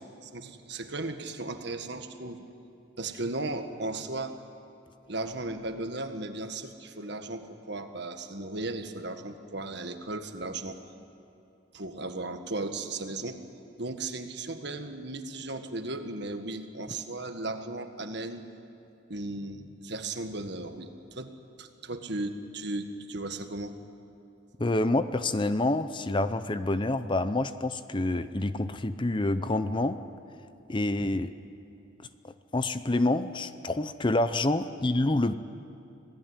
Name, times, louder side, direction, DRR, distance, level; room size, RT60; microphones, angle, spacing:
voice 1, 0.2-2.4 3.0-4.4 5.0-10.8 11.7-13.4 13.8-18.4 19.1-21.3 21.6-23.7, right 2 dB, 60° right, 7 dB, 1.7 m, -36 dB
voice 2, 24.6-30.0 30.7-31.3 32.2-35.4, left 2 dB, 25° left, 12 dB, 0.6 m, -27 dB
26.5 x 17.5 x 9.8 m, 2.8 s
head